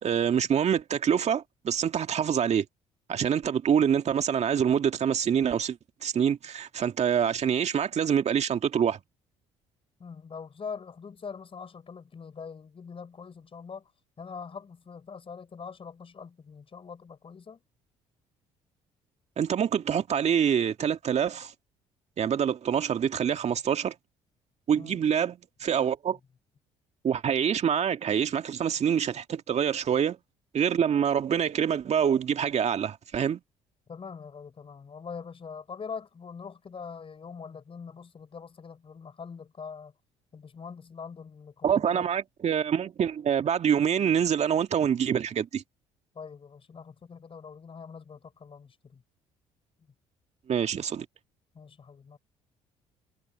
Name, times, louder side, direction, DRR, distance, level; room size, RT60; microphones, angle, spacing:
voice 1, 0.0-2.6 3.1-9.0 19.4-21.5 22.2-23.9 24.7-26.2 27.0-30.2 30.5-33.4 41.6-45.6 50.5-51.1, right 8 dB, 50° right, 2.1 m, -26 dB
voice 2, 10.0-13.9 14.2-17.6 24.8-25.0 33.9-39.9 40.3-42.1 46.1-49.0 51.5-52.2, left 5 dB, 40° left, 7.2 m, -43 dB
hypercardioid pair, 60°, 15 cm